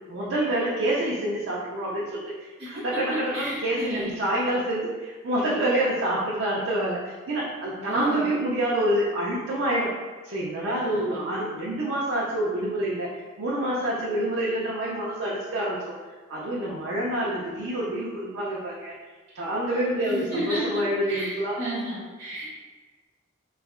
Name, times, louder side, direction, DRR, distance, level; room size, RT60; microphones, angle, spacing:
voice 1, 0.1-9.9 10.2-15.9 16.3-18.9 19.3-21.6, right 1 dB, 70° right, -6 dB, 0.5 m, -27 dB
voice 2, 3.3-4.1 7.8-8.3 10.7-11.2 20.0-20.8 21.1-21.3 21.6-22.5, right 1 dB, 25° right, -10 dB, 0.6 m, -32 dB
3.0 x 2.6 x 2.5 m, 1.4 s
head